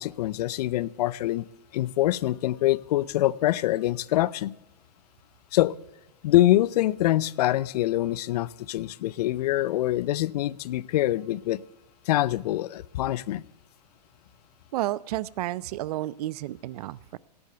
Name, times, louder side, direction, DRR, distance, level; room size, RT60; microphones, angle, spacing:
voice 1, 0.0-1.4 1.7-4.5 5.5-5.8 6.2-11.6 12.1-13.4, left 15 dB, 65° left, 21 dB, 0.5 m, -25 dB
voice 2, 14.7-17.2, right 15 dB, 65° right, 22 dB, 0.5 m, -31 dB
17.5 x 8.1 x 6.7 m, 0.91 s
hypercardioid pair, 125°, 21 cm